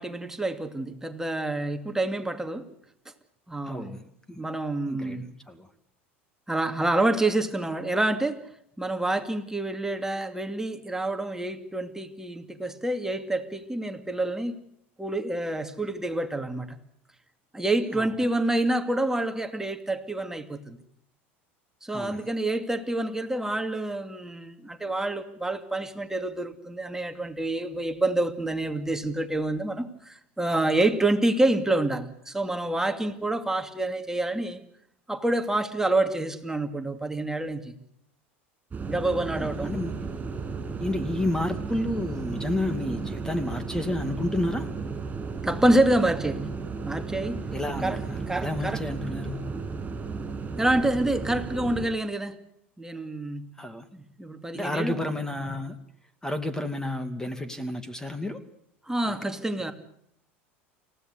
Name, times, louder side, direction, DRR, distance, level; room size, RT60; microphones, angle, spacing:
voice 1, 0.0-2.6 3.5-4.0 4.4-5.3 6.5-8.4 8.8-14.5 15.0-16.8 17.5-20.8 21.8-34.6 35.1-37.7 38.9-39.7 45.4-46.5 46.8-47.4 47.8-48.0 48.3-48.8 50.6-52.4 52.8-53.5 53.9-55.0 58.9-59.7, right 2 dB, 5° right, 6 dB, 2.5 m, -27 dB
voice 2, 3.7-4.0 4.3-4.4 4.9-5.7 17.9-18.1 21.9-22.2 39.4-39.9 40.8-44.7 45.7-45.8 47.5-49.5 53.6-53.8 54.5-55.8 56.2-58.4 59.1-59.2, left 1 dB, 10° left, 10 dB, 2.4 m, -31 dB
sound 1, 38.7-51.9, right 4 dB, 25° right, 7.3 m, -34 dB
28.5 x 16.0 x 8.2 m, 0.72 s
hypercardioid pair, 85°, 7 cm